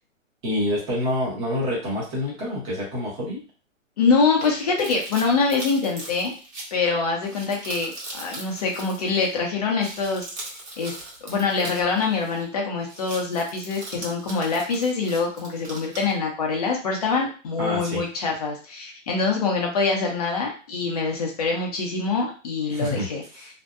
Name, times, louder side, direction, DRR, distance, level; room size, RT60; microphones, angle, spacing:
voice 1, 0.4-3.4 17.6-18.0 22.7-23.1 23.4-23.5, left 1 dB, 15° right, -6 dB, 0.7 m, -27 dB
voice 2, 4.0-6.3 6.7-10.3 10.8-10.9 11.2-23.2, left 4 dB, 30° left, 0 dB, 0.5 m, -24 dB
sound 1, 4.4-9.4 9.7-12.5 12.8-16.1, right 2 dB, 55° right, 1.2 m, -40 dB
2.6 x 2.0 x 2.3 m, 0.36 s
hypercardioid pair, 155°, 40 cm